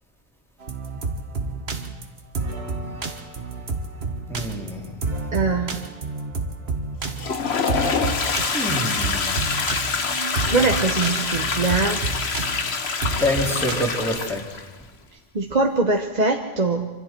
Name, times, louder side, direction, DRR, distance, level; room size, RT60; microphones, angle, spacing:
sound 1, 0.6-13.8, right 3 dB, 75° right, 1.6 m, -29 dB
voice 1, 4.3-4.9 8.5-9.4 13.2-14.5, left 1 dB, ahead, -1 dB, 3.3 m, -26 dB
voice 2, 5.3-5.7 10.0-12.0 15.3-16.9, right 3 dB, 45° right, 2 dB, 1.2 m, -22 dB
Toilet flush, 7.0-14.7, left 5 dB, 90° left, 1.5 m, -26 dB
26.0 x 25.0 x 4.5 m, 1.2 s
omnidirectional pair, 1.0 m